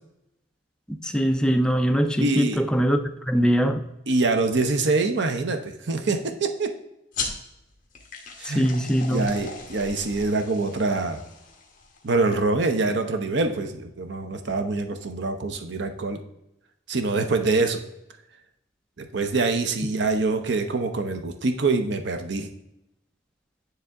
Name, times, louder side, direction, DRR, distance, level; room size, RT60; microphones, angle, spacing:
voice 1, 1.0-3.0 3.3-3.8 8.5-9.3, equal, 5° left, 6 dB, 0.4 m, -22 dB
voice 2, 2.2-2.6 4.1-6.7 8.4-8.7 9.1-11.2 12.0-16.2 16.9-17.8 19.0-22.5, right 3 dB, 60° right, 8 dB, 0.7 m, -25 dB
sound 1, 7.1-12.2, left 4 dB, 45° left, 1.2 m, -37 dB
9.5 x 3.4 x 3.6 m, 0.85 s
head